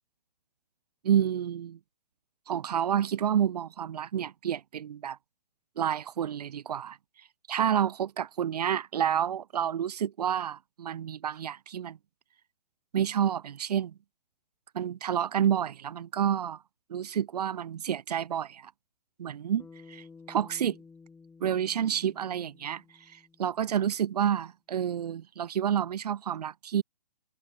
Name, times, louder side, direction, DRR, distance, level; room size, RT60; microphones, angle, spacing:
voice 1, 1.0-1.8 2.5-5.2 5.8-7.0 7.5-12.0 12.9-13.9 14.7-16.6 16.9-18.7 19.2-20.8 21.4-22.8 23.1-26.8, right 9 dB, 70° right, 0.6 m, -29 dB
Bass guitar, 19.6-24.0, left 4 dB, 5° left, 1.9 m, -53 dB
hypercardioid pair, 135°, 21 cm